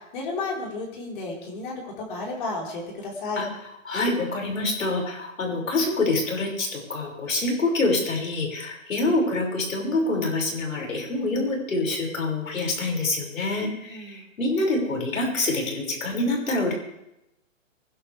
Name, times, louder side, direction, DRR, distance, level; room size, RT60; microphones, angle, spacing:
voice 1, 0.0-3.4 13.9-14.3, left 3 dB, 40° left, -2 dB, 4.7 m, -33 dB
voice 2, 3.8-16.7, left 2 dB, 75° left, 1 dB, 6.4 m, -26 dB
24.5 x 11.5 x 3.5 m, 0.84 s
hypercardioid pair, 160°, 40 cm